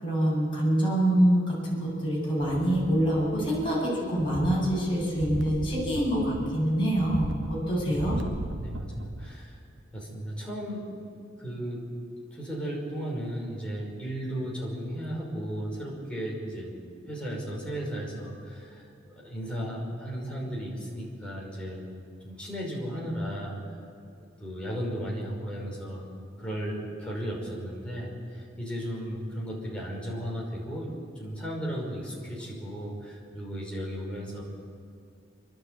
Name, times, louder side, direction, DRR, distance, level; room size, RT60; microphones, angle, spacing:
voice 1, 0.0-8.2, right 1 dB, 25° left, -6 dB, 7.7 m, -25 dB
sound 1, 2.4-3.8 4.1-9.4 9.8-9.9, right 1 dB, 75° right, 1.0 m, -38 dB
voice 2, 8.6-9.6 9.9-10.9 11.4-11.8 12.3-16.7 17.0-21.9 22.2-23.6 24.4-26.1 26.4-34.4, equal, 5° left, -4 dB, 5.6 m, -35 dB
28.0 x 12.0 x 8.4 m, 2.4 s
head